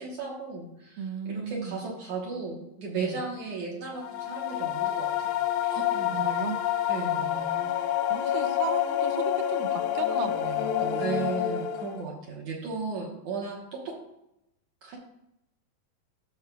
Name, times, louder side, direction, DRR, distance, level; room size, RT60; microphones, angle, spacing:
voice 1, 0.0-6.3 6.9-7.5 11.0-14.0 14.8-15.0, right 4 dB, 65° right, -2 dB, 1.9 m, -36 dB
voice 2, 1.0-1.8 2.9-3.2 5.8-5.9 6.1-6.6 7.2-7.8 8.1-11.4, right 7 dB, 80° right, 9 dB, 1.9 m, -36 dB
sound 1, 4.0-12.1, left 11 dB, 85° left, 2.2 m, -28 dB
12.5 x 6.5 x 2.3 m, 0.84 s
omnidirectional pair, 4.5 m